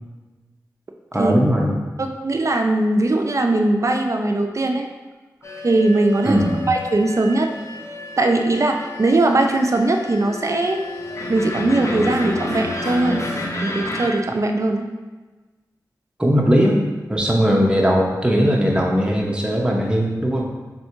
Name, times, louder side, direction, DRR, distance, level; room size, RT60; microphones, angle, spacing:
voice 1, 1.1-1.7 6.3-6.6 16.2-16.8 17.1-20.4, equal, 15° right, -2 dB, 0.8 m, -18 dB
voice 2, 2.0-4.9 5.6-7.5 8.2-10.8 11.3-13.3 13.6-14.9, right 2 dB, 45° right, 4 dB, 0.4 m, -20 dB
sound 1, 5.4-14.1, left 2 dB, 40° left, 0.6 m, -30 dB
3.6 x 2.7 x 4.5 m, 1.3 s
wide cardioid pair, 65°, 7 cm